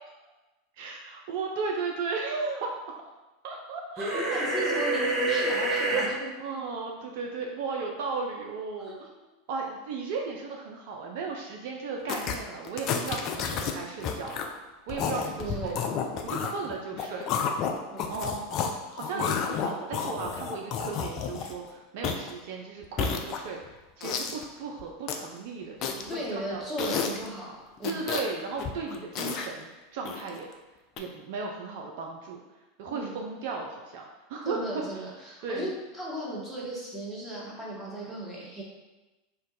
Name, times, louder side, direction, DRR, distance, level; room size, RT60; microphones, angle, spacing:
voice 1, 0.8-2.7 3.4-4.9 6.4-9.1 9.5-14.4 14.9-15.8 16.2-17.3 18.1-18.5 18.9-23.6 24.0-27.1 27.8-30.5 31.0-32.4 32.8-34.0 34.3-34.6 34.9-35.0 35.4-35.7, right 4 dB, 60° right, 0 dB, 0.3 m, -35 dB
sound 1, 4.0-6.1, right 2 dB, 25° right, 0.7 m, -27 dB
voice 2, 4.1-6.3 8.8-9.0 15.4-15.8 17.9-18.2 19.1-19.3 26.1-28.0 28.9-29.0 32.9-33.1 34.4-38.6, equal, ahead, -6 dB, 1.0 m, -36 dB
sound 2, 12.1-12.4 12.6-13.7 14.0-14.5 14.9-18.7 19.0-21.7 22.0-22.3 22.8-23.6 24.0-24.4 24.8-25.3 25.8-26.2 26.8-27.3 27.8-28.3 28.6-29.5 30.1-30.4 31.0-31.1, left 7 dB, 45° left, 0.3 m, -31 dB
2.5 x 2.2 x 3.9 m, 1.1 s
figure-of-eight pair, 85°, 0 cm